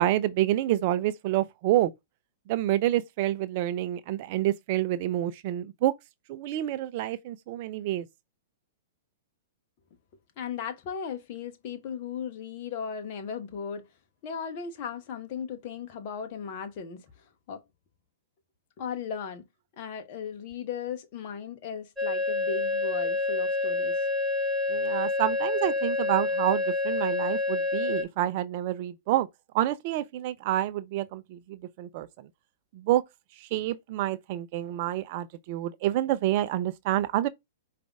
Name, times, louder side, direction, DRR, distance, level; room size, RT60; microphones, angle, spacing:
voice 1, 0.0-1.9 2.5-5.9 6.3-8.1 24.7-29.3 29.5-32.1 32.7-33.0 33.4-37.3, right 13 dB, 50° right, 0.4 m, -28 dB
voice 2, 10.4-13.9 14.2-17.6 18.8-19.4 19.7-24.1, left 7 dB, 45° left, 0.8 m, -37 dB
sound 1, 22.0-28.0, left 2 dB, 5° right, 1.2 m, -28 dB
4.9 x 2.5 x 3.5 m
figure-of-eight pair, 105°, 0 cm